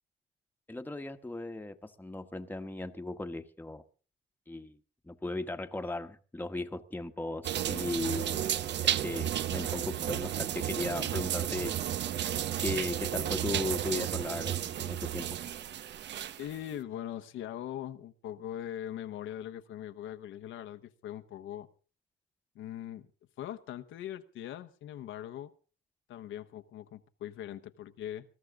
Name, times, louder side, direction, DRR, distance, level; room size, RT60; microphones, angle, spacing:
voice 1, 0.7-3.8 4.5-4.8 5.1-8.4 8.8-11.7 12.6-15.4, left 2 dB, 10° left, 1.2 m, -37 dB
sound 1, 7.4-16.6, right 11 dB, 65° right, 0.7 m, -33 dB
voice 2, 16.4-21.7 22.5-23.1 23.4-25.5 26.1-28.2, left 11 dB, 85° left, 1.1 m, -41 dB
21.0 x 13.0 x 3.7 m
cardioid pair, 90°, 20 cm